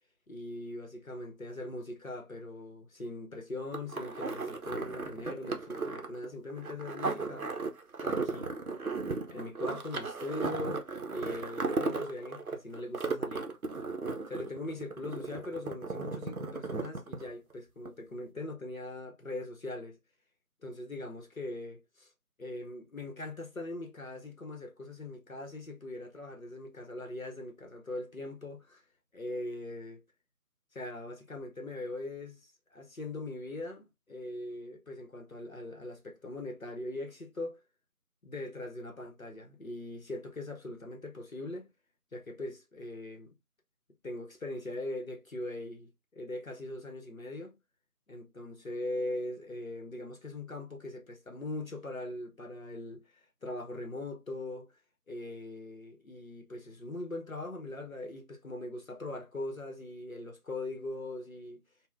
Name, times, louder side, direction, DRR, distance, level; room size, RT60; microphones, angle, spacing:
voice 1, 0.3-7.5 8.0-8.5 9.3-13.5 14.3-20.0 20.6-22.1 22.4-28.8 29.1-30.0 30.7-37.6 38.2-41.7 42.1-43.3 44.0-47.6 48.1-54.7 55.1-61.6, left 2 dB, 60° left, 0.7 m, -41 dB
sound 1, 3.7-17.5 17.9-18.0, right 4 dB, 65° right, 0.6 m, -35 dB
3.6 x 2.1 x 2.5 m
figure-of-eight pair, 180°, 47 cm